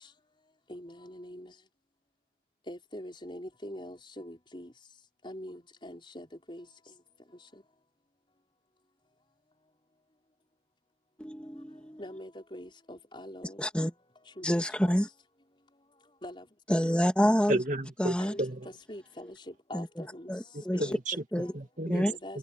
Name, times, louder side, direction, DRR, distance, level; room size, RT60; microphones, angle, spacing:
voice 1, 0.7-1.5 2.7-4.7 5.2-6.6 12.0-13.6 14.4-14.5 14.8-14.9 16.2-16.4 16.7-16.9 18.2-18.4 18.6-19.4 19.7-20.3 20.7-21.0 21.9-22.4, equal, 25° left, 4.9 m, -43 dB
voice 2, 11.2-12.0 13.6-13.9 14.4-15.1 16.7-17.6 18.0-18.3 19.7-20.8 21.3-21.5 21.9-22.1, equal, 5° left, 2.5 m, -28 dB
voice 3, 17.5-18.7 20.5-22.1 22.3-22.4, right 1 dB, 45° right, 2.3 m, -33 dB
head